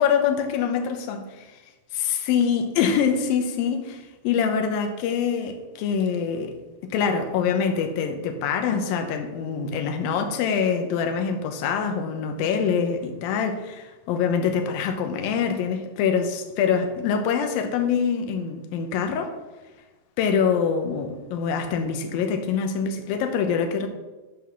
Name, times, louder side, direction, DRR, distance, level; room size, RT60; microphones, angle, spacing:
voice 1, 0.0-1.5 1.9-6.6 6.8-19.3 20.2-23.9, left 6 dB, 75° left, 2.3 m, -25 dB
11.5 x 3.9 x 6.0 m
omnidirectional pair, 4.9 m